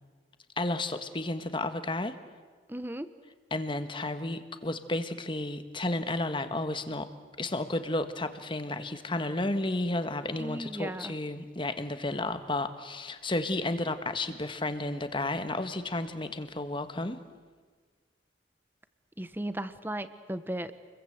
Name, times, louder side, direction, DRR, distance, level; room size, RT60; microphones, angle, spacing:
voice 1, 0.6-2.1 3.5-7.1 7.4-17.2, left 2 dB, 25° left, 10 dB, 1.4 m, -32 dB
voice 2, 2.7-3.1 10.4-11.1 19.2-20.7, right 1 dB, 10° right, 12 dB, 1.1 m, -36 dB
29.0 x 22.5 x 8.0 m, 1.5 s
head